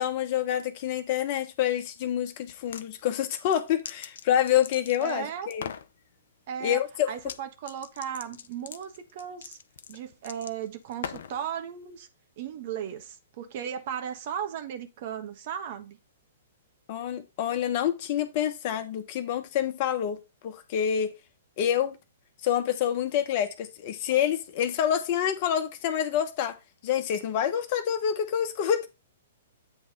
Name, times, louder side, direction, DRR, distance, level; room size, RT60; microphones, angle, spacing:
voice 1, 0.0-5.7 6.6-7.1 16.9-20.2 20.4-21.1 21.6-22.0 22.4-26.6 26.8-28.9, left 10 dB, 45° left, 1.2 m, -27 dB
sound 1, 2.5-2.9 3.4-5.2 5.5-5.9 7.2-7.4 7.7-11.4, left 7 dB, 65° left, 0.7 m, -41 dB
voice 2, 5.0-5.5 6.5-9.6 9.9-12.1 12.4-16.0, right 8 dB, 50° right, 1.3 m, -36 dB
8.5 x 3.4 x 5.4 m
hypercardioid pair, 115°, 0 cm